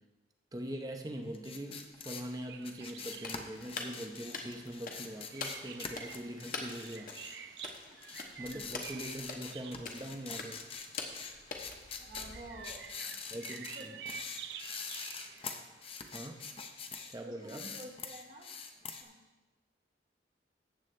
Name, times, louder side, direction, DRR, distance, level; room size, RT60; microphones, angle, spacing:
voice 1, 0.5-7.3 8.4-10.6 13.3-14.0 16.1-16.5 17.1-17.8, right 1 dB, 20° right, 4 dB, 0.7 m, -42 dB
sound 1, 1.3-7.7 8.0-17.1 17.4-19.0, left 5 dB, 30° left, 0.7 m, -44 dB
sound 2, 2.2-16.6, right 8 dB, 65° right, 0.5 m, -50 dB
sound 3, 3.2-12.9, left 4 dB, 45° left, 1.1 m, -46 dB
voice 2, 12.0-13.2 13.6-13.8 17.2-18.5 19.0-19.2, right 1 dB, 40° right, 0 dB, 1.0 m, -50 dB
14.0 x 8.1 x 3.3 m, 1.1 s
head